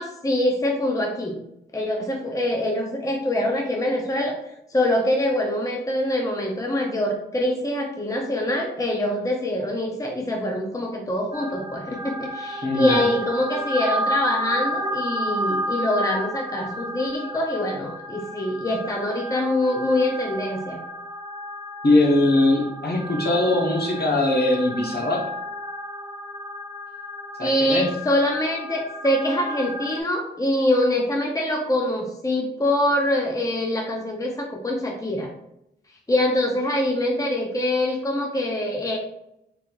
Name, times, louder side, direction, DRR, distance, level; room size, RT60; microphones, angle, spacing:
voice 1, 0.0-1.4 1.7-4.4 4.7-20.8 27.4-35.3 36.1-39.0, left 1 dB, 15° left, 1 dB, 0.7 m, -24 dB
sound 1, 11.3-30.0, equal, 25° right, 0.5 m, -32 dB
voice 2, 12.6-13.0 21.8-25.3 27.4-27.9, left 2 dB, 50° left, 0 dB, 1.0 m, -21 dB
3.9 x 2.8 x 2.4 m, 0.80 s
cardioid pair, 40°, 21 cm